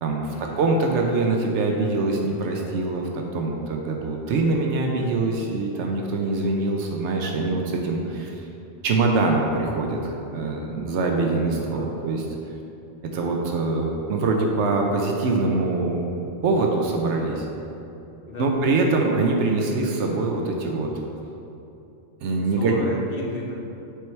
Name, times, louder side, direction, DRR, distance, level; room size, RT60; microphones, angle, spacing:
voice 1, 0.0-8.4 8.8-12.3 13.0-16.0 16.4-17.5 18.4-20.9 22.2-22.7, right 3 dB, 85° right, 1 dB, 1.0 m, -24 dB
voice 2, 11.6-12.1 18.3-18.7 22.6-23.5, left 2 dB, 55° left, -2 dB, 0.9 m, -34 dB
8.0 x 4.5 x 3.1 m, 2.9 s
omnidirectional pair, 1.2 m